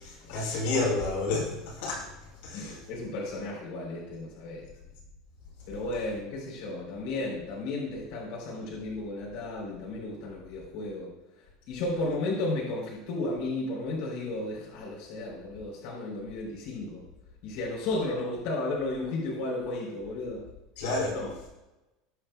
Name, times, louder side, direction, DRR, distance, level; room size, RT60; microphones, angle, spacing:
voice 1, 0.0-2.1 2.4-2.8 20.8-21.2, left 3 dB, 80° left, -2 dB, 4.1 m, -30 dB
voice 2, 2.5-4.7 5.7-11.1 11.7-17.0 17.4-20.4 21.1-21.3, left 2 dB, 60° left, -3 dB, 3.8 m, -34 dB
20.5 x 6.9 x 2.3 m, 0.99 s
cardioid pair, 165°, 0 cm